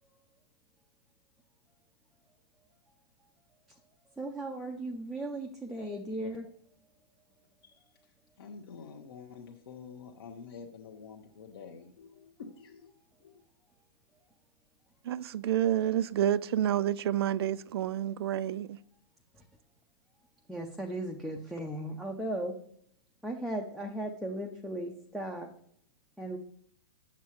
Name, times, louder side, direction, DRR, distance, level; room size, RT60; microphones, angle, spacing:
voice 1, 4.2-6.5 20.5-22.6 23.2-25.5 26.2-26.4, right 1 dB, ahead, 0.4 m, -36 dB
voice 2, 8.4-12.9 13.2-13.4, left 5 dB, 65° left, 1.1 m, -48 dB
voice 3, 15.0-18.8, right 11 dB, 70° right, 0.4 m, -29 dB
7.3 x 7.2 x 3.0 m
supercardioid pair, 165°, 13 cm